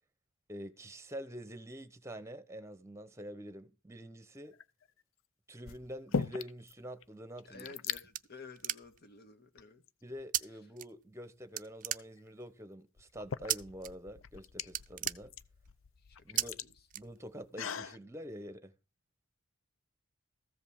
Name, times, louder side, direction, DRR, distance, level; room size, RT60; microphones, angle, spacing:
voice 1, 0.5-4.6 5.5-7.6 10.0-15.3 16.2-16.6 16.9-18.7, equal, 15° right, 1.1 m, -46 dB
sound 1, 4.4-4.9 5.6-6.7 7.0-7.1 7.3-8.0 8.8-9.0 9.6-10.5 12.2-12.3 13.0-18.0, left 5 dB, 65° left, 0.6 m, -40 dB
voice 2, 7.4-9.8 16.0-16.9, left 4 dB, 50° left, 1.7 m, -53 dB
sound 2, 7.5-9.2 10.3-10.4 10.8-11.3 11.6-12.5 13.5-13.9 14.2-14.4 14.6-15.8 16.4-16.5 16.9-17.6, right 13 dB, 40° right, 0.5 m, -36 dB
14.5 x 5.4 x 7.1 m
head